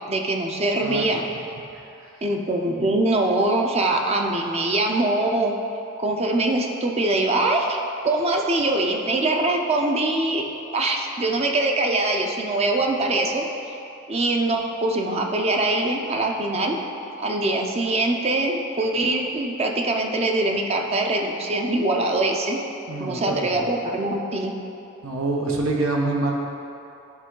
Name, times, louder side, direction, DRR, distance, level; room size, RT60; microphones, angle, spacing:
voice 1, 0.1-1.2 2.2-5.5 6.0-7.8 8.0-10.5 10.7-13.8 14.1-16.8 17.1-22.6 23.0-24.5, right 2 dB, 30° right, 2 dB, 0.5 m, -23 dB
voice 2, 0.8-1.2 1.7-1.8 22.9-23.6 25.0-26.3, right 2 dB, 85° right, 0 dB, 0.9 m, -26 dB
11.0 x 3.7 x 3.8 m, 2.8 s
head